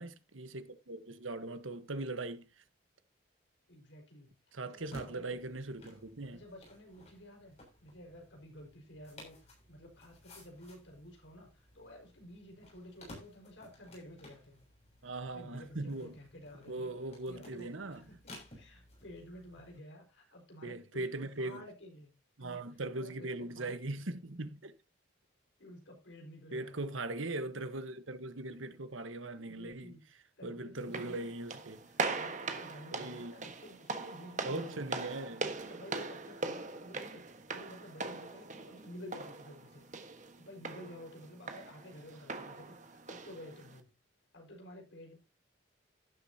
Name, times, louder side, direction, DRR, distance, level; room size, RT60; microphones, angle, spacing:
voice 1, 0.0-2.6 4.5-6.4 15.0-16.2 16.7-18.1 20.6-21.6 22.4-24.8 26.5-29.9 30.4-31.8 32.9-33.5 34.4-35.5, right 2 dB, 85° right, 1.3 m, -40 dB
voice 2, 3.7-4.3 4.7-5.4 6.3-14.6 15.3-16.9 17.3-22.1 22.4-22.6 23.0-23.7 25.6-26.8 29.3-30.0 30.4-31.3 31.9-34.8 35.7-39.8 40.4-43.9 44.3-45.2, left 1 dB, 65° left, 5.1 m, -52 dB
sound 1, 4.8-19.8, left 1 dB, 35° left, 6.7 m, -57 dB
sound 2, 30.8-43.8, right 3 dB, 40° right, 1.4 m, -41 dB
12.0 x 12.0 x 2.9 m
head